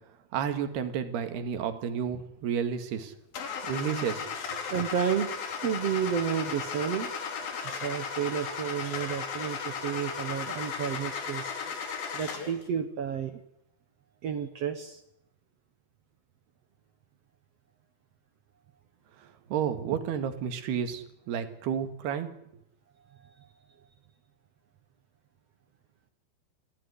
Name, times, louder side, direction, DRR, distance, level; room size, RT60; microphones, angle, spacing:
voice 1, 0.3-3.1 3.6-4.6 19.2-22.3, right 8 dB, 85° right, 9 dB, 4.0 m, -31 dB
Car / Engine starting, 3.3-12.6, left 6 dB, 65° left, 4.7 m, -36 dB
voice 2, 4.7-7.1 7.6-11.5 12.1-13.4 14.2-15.0 23.2-23.5, right 8 dB, 60° right, 10 dB, 1.7 m, -31 dB
28.5 x 15.5 x 9.9 m, 0.77 s
omnidirectional pair, 4.5 m